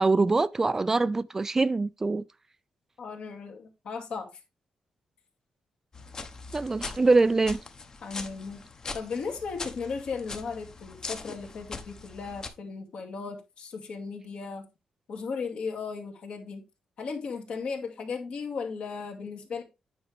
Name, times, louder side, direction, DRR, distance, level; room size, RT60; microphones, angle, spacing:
voice 1, 0.0-2.2 6.5-7.6, right 3 dB, 20° right, 0.3 m, -24 dB
voice 2, 3.0-4.4 8.0-8.6 8.9-14.7 15.1-16.6 17.0-19.6, left 5 dB, 65° left, 2.2 m, -36 dB
sound 1, 5.9-12.5, left 4 dB, 35° left, 1.0 m, -41 dB
9.2 x 5.0 x 3.5 m
wide cardioid pair, 135°, 2 cm